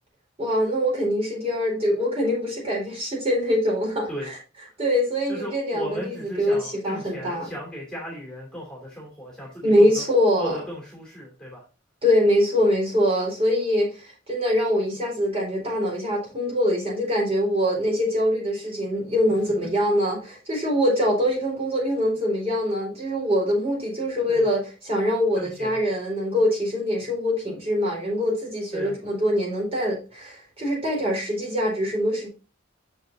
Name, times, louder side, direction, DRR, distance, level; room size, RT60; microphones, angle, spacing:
voice 1, 0.4-4.1 4.8-7.5 9.6-10.5 12.0-32.3, equal, 30° right, 4.3 m, -23 dB
voice 2, 5.3-10.0 10.4-11.6 24.3-24.5 25.3-25.8 28.7-29.0, equal, 5° left, 2.7 m, -36 dB
6.8 x 6.5 x 2.8 m
head